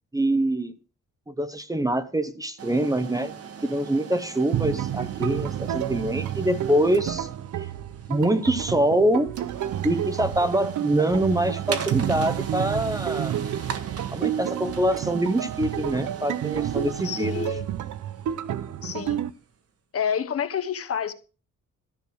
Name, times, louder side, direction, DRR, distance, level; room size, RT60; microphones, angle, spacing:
voice 1, 0.1-0.7 1.3-3.3 3.6-7.3 7.6-7.7 8.1-9.3 9.8-13.4 14.1-17.5, right 1 dB, 10° right, 0.8 m, -24 dB
sound 1, 2.6-19.4, right 7 dB, 50° right, 1.6 m, -40 dB
sound 2, 4.5-19.3, right 11 dB, 75° right, 0.8 m, -30 dB
voice 2, 17.0-17.7 18.8-19.2 19.9-21.1, left 8 dB, 50° left, 1.1 m, -28 dB
14.0 x 6.6 x 6.3 m
wide cardioid pair, 155°, 30 cm